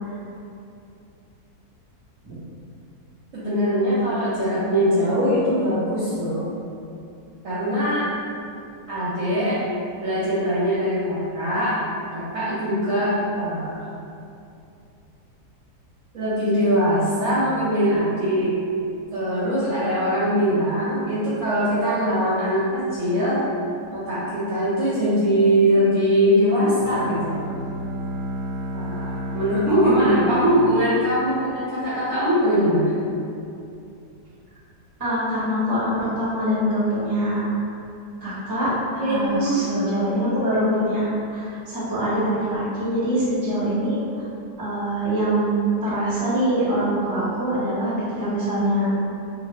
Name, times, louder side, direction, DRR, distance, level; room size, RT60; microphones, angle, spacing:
voice 1, 3.3-6.5 7.4-8.1 8.9-9.6 10.0-11.8 12.1-13.9 16.1-18.5 19.1-23.4 23.9-27.4 28.7-32.9 38.9-40.0, equal, 60° right, -10 dB, 0.9 m, -22 dB
Bowed string instrument, 26.7-31.7, right 1 dB, 90° right, 1.2 m, -32 dB
voice 2, 29.7-30.4 35.0-37.5 38.2-38.8 39.1-44.0 44.6-48.9, right 1 dB, 20° right, -11 dB, 0.7 m, -24 dB
2.6 x 2.5 x 3.1 m, 2.6 s
omnidirectional pair, 1.7 m